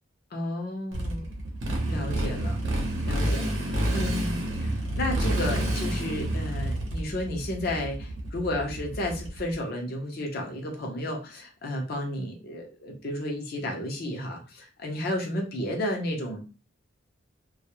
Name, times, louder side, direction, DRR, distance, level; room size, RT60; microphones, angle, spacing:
voice 1, 0.3-1.3 1.9-2.6 3.1-16.5, left 1 dB, 50° left, 1 dB, 0.6 m, -32 dB
Motorcycle, 0.9-9.5, right 1 dB, 70° right, 0.7 m, -29 dB
2.3 x 2.0 x 2.8 m, 0.32 s
head